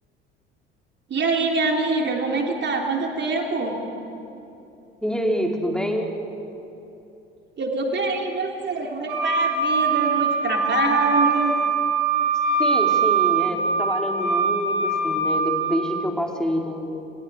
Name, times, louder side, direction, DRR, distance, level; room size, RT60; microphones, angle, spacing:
voice 1, 1.1-3.8 7.6-11.5, right 3 dB, 35° right, 1 dB, 3.4 m, -25 dB
voice 2, 5.0-6.1 12.6-17.0, equal, ahead, 1 dB, 4.0 m, -26 dB
Wind instrument woodwind instrument, 9.1-15.8, right 4 dB, 65° right, 7.3 m, -22 dB
30.0 x 28.5 x 5.0 m, 2.9 s
figure-of-eight pair, 60°, 30 cm